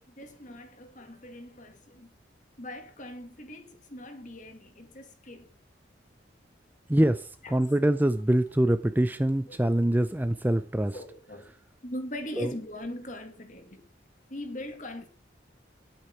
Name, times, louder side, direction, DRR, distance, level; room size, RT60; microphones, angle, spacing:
voice 1, 0.1-2.1 2.6-5.5 7.4-7.6 9.5-10.0 10.9-11.5 11.8-13.8 14.3-15.1, left 1 dB, 40° left, 2.4 m, -41 dB
voice 2, 6.9-11.0 12.4-12.5, right 1 dB, 10° right, 0.5 m, -24 dB
11.5 x 8.9 x 6.0 m
head